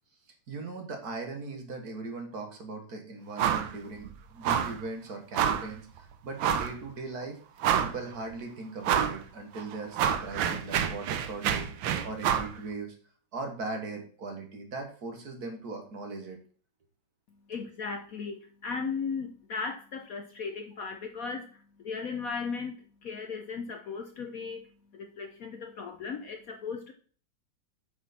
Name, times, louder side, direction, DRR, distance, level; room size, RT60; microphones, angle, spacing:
voice 1, 0.5-7.4 7.8-11.7 12.0-12.9 13.3-16.4, right 3 dB, 50° right, 4 dB, 1.9 m, -39 dB
sound 1, 3.4-3.7 4.0-4.1 4.4-4.8 5.3-5.7 6.4-6.8 7.2-7.3 7.6-8.1 8.8-9.2 9.6-12.5, right 9 dB, 80° right, 1.5 m, -28 dB
voice 2, 17.5-26.9, left 5 dB, 60° left, 6 dB, 1.0 m, -37 dB
9.2 x 6.1 x 4.2 m, 0.43 s
omnidirectional pair, 2.1 m